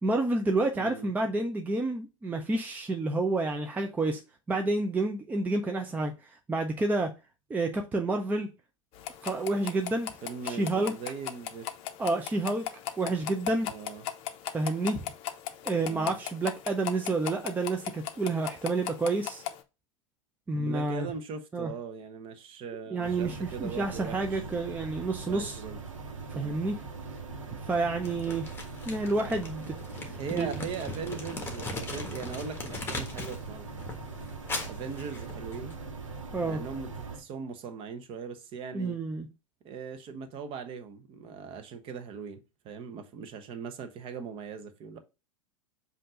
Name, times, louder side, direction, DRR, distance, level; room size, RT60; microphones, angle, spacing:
voice 1, 0.0-4.2 4.5-6.1 6.5-7.1 7.5-8.5 9.2-10.1 10.4-10.9 12.0-12.6 13.0-13.7 14.5-15.0 15.6-19.4 20.5-21.1 21.5-21.7 22.9-25.6 26.3-26.8 27.7-28.5 28.9-30.5 36.3-36.6 38.7-39.3, right 2 dB, 10° right, 0.6 m, -29 dB
voice 2, 0.7-1.1 10.2-11.7 13.6-14.0 15.9-16.1 20.5-24.4 25.2-25.8 26.3-26.6 30.2-33.7 34.7-35.8 36.4-39.0 39.6-42.4 42.6-45.0, right 6 dB, 30° right, 1.0 m, -40 dB
sound 1, 8.9-19.6, left 11 dB, 35° left, 0.7 m, -39 dB
sound 2, 23.0-37.2, right 4 dB, 70° right, 1.2 m, -41 dB
Crumpling crinkling, 28.0-33.4 33.7-35.7, left 2 dB, 15° left, 1.4 m, -39 dB
7.6 x 2.7 x 5.0 m
figure-of-eight pair, 90°, 17 cm